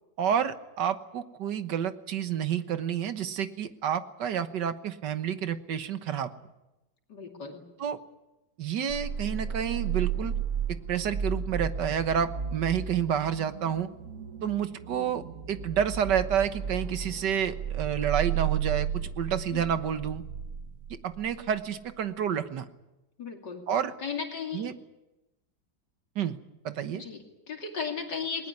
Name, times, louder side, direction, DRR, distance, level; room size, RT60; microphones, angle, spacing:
voice 1, 0.2-6.3 7.8-8.0 8.6-10.4 10.7-13.9 14.4-20.2 20.9-22.7 23.7-23.9 24.5-24.7 26.2-26.4 26.6-27.0, right 8 dB, 65° right, 11 dB, 1.8 m, -29 dB
voice 2, 7.1-7.6 19.5-19.7 23.2-23.7 24.0-24.7 26.9-28.5, left 6 dB, 65° left, 3 dB, 3.2 m, -36 dB
sound 1, 8.9-21.5, right 8 dB, 45° right, 1.6 m, -34 dB
20.5 x 19.5 x 9.6 m, 0.96 s
omnidirectional pair, 2.1 m